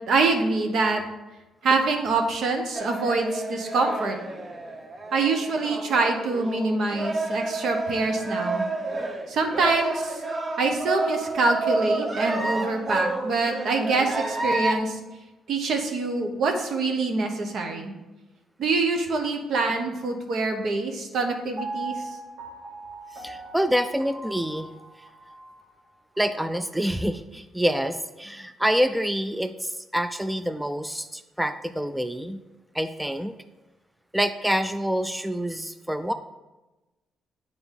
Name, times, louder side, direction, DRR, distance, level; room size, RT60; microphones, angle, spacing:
voice 1, 0.1-1.0 1.6-4.2 5.1-8.7 9.3-10.2 10.6-15.0 15.5-17.9 18.6-22.1, right 3 dB, 65° right, 4 dB, 1.0 m, -25 dB
sound 1, 2.7-14.8, right 2 dB, 35° right, 0.8 m, -30 dB
Piano, 21.6-25.7 26.1-26.2, right 3 dB, 85° right, 1.5 m, -38 dB
voice 2, 23.1-24.7 26.2-32.4 32.7-33.3 34.1-36.1, equal, 5° right, 9 dB, 0.3 m, -27 dB
8.9 x 3.9 x 3.7 m, 1.1 s
cardioid pair, 90°, 0 cm